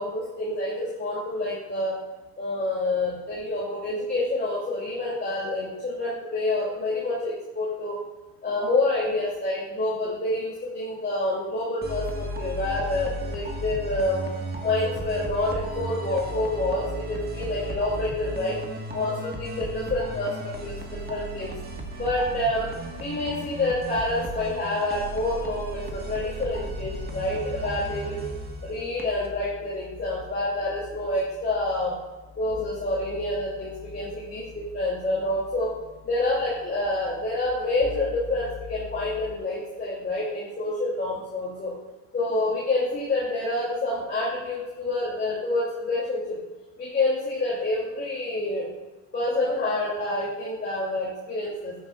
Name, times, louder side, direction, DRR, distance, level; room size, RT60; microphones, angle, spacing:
voice 1, 0.0-2.0 2.4-8.0 8.4-14.3 14.6-18.6 18.9-21.5 21.9-28.2 28.6-32.0 32.4-35.8 36.0-41.7 42.1-46.4 46.8-48.7 49.1-51.7, left 2 dB, 20° left, -5 dB, 2.9 m, -28 dB
sound 1, 11.8-29.3, right 1 dB, 20° right, 1.7 m, -35 dB
sound 2, 25.8-39.4, left 6 dB, 50° left, 2.1 m, -45 dB
14.0 x 9.9 x 2.5 m, 1.1 s
cardioid pair, 130°, 46 cm